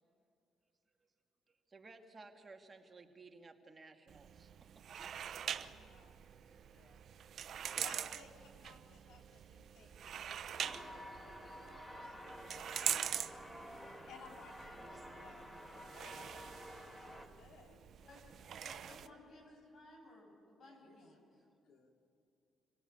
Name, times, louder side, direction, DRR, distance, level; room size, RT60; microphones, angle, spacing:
voice 1, 1.5-4.7, right 3 dB, 30° right, 3 dB, 2.3 m, -57 dB
sound 1, 4.1-19.1, right 9 dB, 65° right, 0.8 m, -44 dB
voice 2, 5.4-7.0 7.7-12.3 12.7-15.5 15.9-17.8 18.1-18.2 18.6-19.5 20.6-21.0 21.6-21.9, left 4 dB, 80° left, 3 dB, 3.1 m, -61 dB
sound 2, 10.6-17.3, equal, 10° left, 2.2 m, -51 dB
voice 3, 17.9-18.2 18.6-21.4, left 1 dB, 55° left, 1 dB, 7.9 m, -59 dB
26.0 x 18.0 x 8.8 m, 2.6 s
cardioid pair, 90°, 0 cm